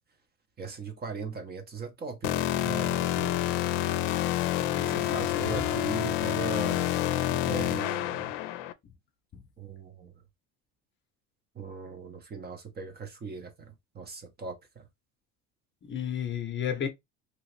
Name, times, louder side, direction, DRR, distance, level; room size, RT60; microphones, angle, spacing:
voice 1, 0.6-3.5 4.8-7.0 7.3-8.3 9.6-10.1 11.5-14.8, right 4 dB, 30° right, 0.8 m, -39 dB
sound 1, 2.2-8.7, left 14 dB, 85° left, 0.5 m, -28 dB
voice 2, 4.7-5.9 9.3-9.4 15.8-16.9, left 8 dB, 35° left, 0.7 m, -33 dB
2.9 x 2.4 x 3.1 m
supercardioid pair, 100°, 34 cm